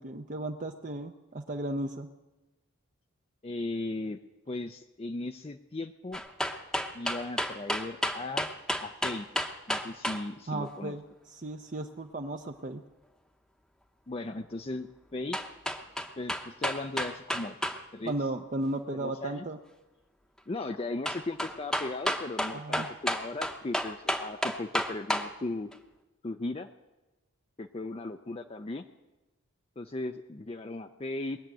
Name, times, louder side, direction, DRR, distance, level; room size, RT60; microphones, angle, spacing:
voice 1, 0.0-2.1 10.5-12.8 18.0-19.6 22.5-22.9, right 2 dB, 35° right, 5 dB, 0.6 m, -35 dB
voice 2, 3.4-4.2 4.5-6.2 6.9-8.5 8.8-9.3 9.7-11.0 14.1-15.4 16.2-17.6 17.9-18.1 18.9-19.5 20.5-25.7 26.2-26.7 27.6-28.8 29.8-31.4, left 2 dB, 25° left, 6 dB, 0.5 m, -37 dB
sound 1, 6.1-10.2 15.3-17.8 18.1-18.2 21.1-25.3 25.7-25.8, equal, 5° left, 0.8 m, -31 dB
21.0 x 7.3 x 9.1 m, 1.1 s
head